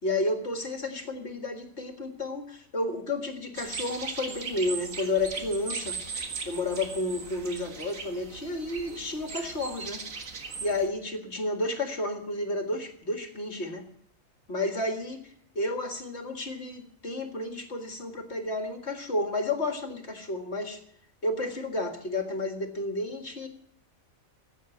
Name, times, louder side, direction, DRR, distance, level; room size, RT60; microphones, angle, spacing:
voice 1, 0.0-6.0 6.5-10.0 10.6-13.8 14.5-20.8 21.2-23.5, left 2 dB, 55° left, 5 dB, 2.2 m, -31 dB
sound 1, 3.6-10.9, right 4 dB, 75° right, 2.0 m, -38 dB
15.0 x 9.0 x 9.1 m, 0.64 s
omnidirectional pair, 1.4 m